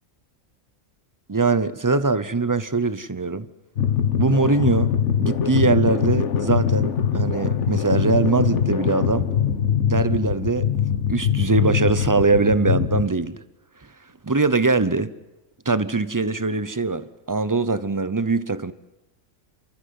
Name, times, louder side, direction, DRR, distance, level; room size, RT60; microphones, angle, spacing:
voice 1, 1.3-3.5 4.1-4.9 5.2-9.3 9.8-10.7 11.1-13.4 14.2-15.1 15.7-18.7, right 3 dB, 20° right, 0.5 m, -22 dB
sound 1, 3.8-13.1, left 8 dB, 60° left, 1.5 m, -23 dB
30.0 x 14.0 x 9.5 m
omnidirectional pair, 1.4 m